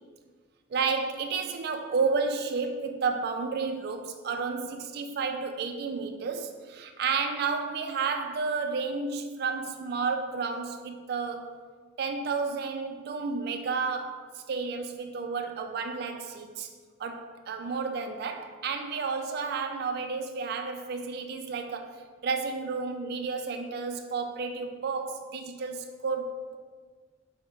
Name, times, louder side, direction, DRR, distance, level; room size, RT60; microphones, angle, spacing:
voice 1, 0.7-11.5 12.0-16.7 17.0-22.0 22.2-26.6, right 4 dB, 55° right, 5 dB, 0.3 m, -31 dB
4.8 x 2.1 x 4.5 m, 1.5 s
head